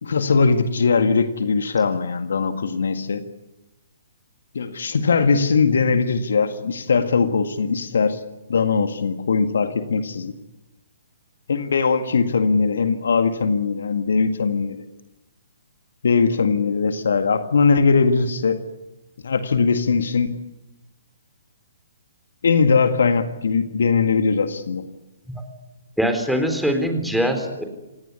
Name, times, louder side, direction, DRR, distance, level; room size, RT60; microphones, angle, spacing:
voice 1, 0.0-3.2 4.6-8.2 8.5-10.3 11.5-14.8 16.0-18.6 19.2-20.3 22.4-24.8, left 5 dB, 65° left, 9 dB, 1.8 m, -20 dB
voice 2, 26.0-27.6, equal, ahead, 6 dB, 3.7 m, -22 dB
27.5 x 17.5 x 9.7 m, 1.0 s
figure-of-eight pair, 125°, 0 cm